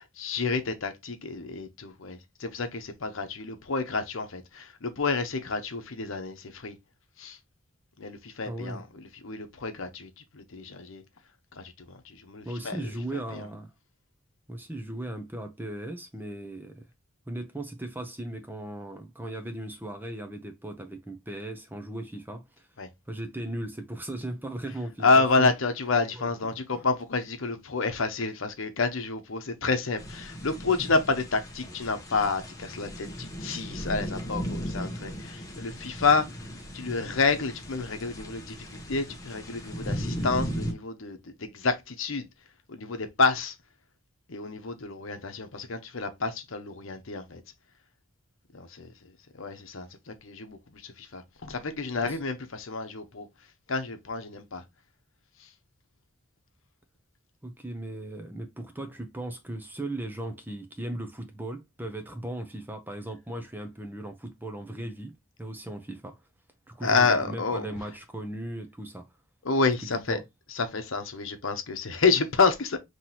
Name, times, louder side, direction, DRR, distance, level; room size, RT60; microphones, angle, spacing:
voice 1, 0.0-6.8 7.2-7.4 8.0-11.0 11.6-13.5 22.8-22.9 25.0-36.3 36.7-42.3 42.7-43.5 44.3-47.4 48.5-48.9 49.3-53.3 53.7-54.6 66.8-67.7 69.4-70.2 70.5-72.8, left 4 dB, 70° left, 0.9 m, -29 dB
voice 2, 8.4-8.8 12.4-13.7 14.5-16.8 17.3-22.7 23.1-25.5 26.1-26.3 26.7-26.8 52.0-52.2 57.4-65.1 65.4-66.2 66.7-69.0 70.1-70.2, right 1 dB, 10° right, 0.6 m, -37 dB
sound 1, 30.0-40.7, equal, 15° left, 0.9 m, -37 dB
5.8 x 3.0 x 2.8 m
head